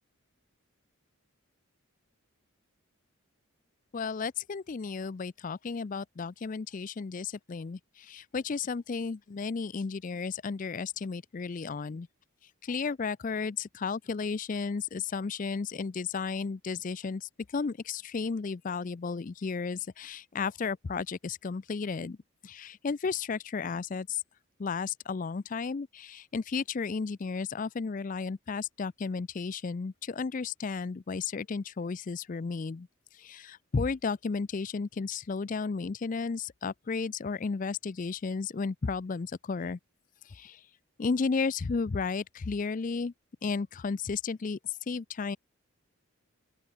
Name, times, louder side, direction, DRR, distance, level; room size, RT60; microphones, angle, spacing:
voice 1, 3.9-12.1 12.6-22.2 22.4-24.2 24.6-32.9 33.1-39.8 40.2-40.6 41.0-43.1 43.4-45.4, left 5 dB, 35° left, 0.4 m, -33 dB
open air
head